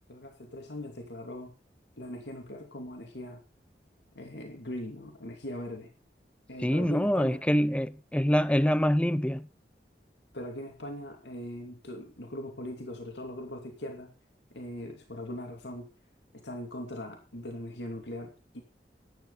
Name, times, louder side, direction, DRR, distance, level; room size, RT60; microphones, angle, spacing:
voice 1, 0.1-1.5 2.0-3.4 4.1-5.9 6.5-7.4 10.3-14.1 14.5-15.9 16.3-18.6, left 1 dB, 90° left, 2.6 m, -40 dB
voice 2, 6.6-9.5, equal, 5° left, 0.5 m, -25 dB
13.0 x 11.0 x 4.1 m
head